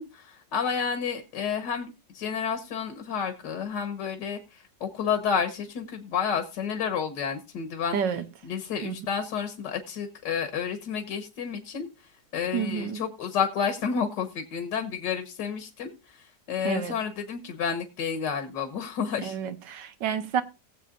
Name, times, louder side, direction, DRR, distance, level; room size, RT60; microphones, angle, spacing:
voice 1, 0.0-8.0 8.4-11.9 12.3-19.4, left 7 dB, 80° left, 1.9 m, -30 dB
voice 2, 7.9-8.2 8.8-9.0 12.5-13.0 16.6-17.0 19.2-20.4, right 8 dB, 85° right, 1.6 m, -29 dB
19.5 x 7.7 x 2.5 m
omnidirectional pair, 1.9 m